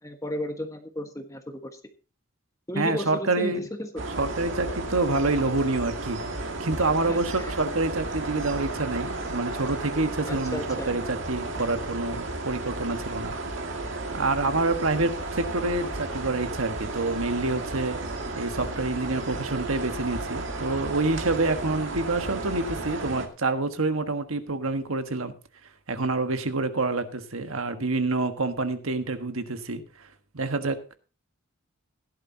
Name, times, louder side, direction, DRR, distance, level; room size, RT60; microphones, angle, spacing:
voice 1, 0.0-1.8 2.7-4.1 7.1-7.5 10.3-10.9, left 1 dB, 15° left, 5 dB, 1.3 m, -34 dB
voice 2, 2.7-3.6 4.2-7.3 7.6-13.3 14.1-18.0 18.3-25.3 25.9-30.1 30.3-30.8, right 3 dB, 75° right, 8 dB, 1.4 m, -27 dB
sound 1, 4.0-23.3, right 2 dB, 60° right, 2.1 m, -33 dB
17.0 x 11.0 x 2.8 m, 0.34 s
head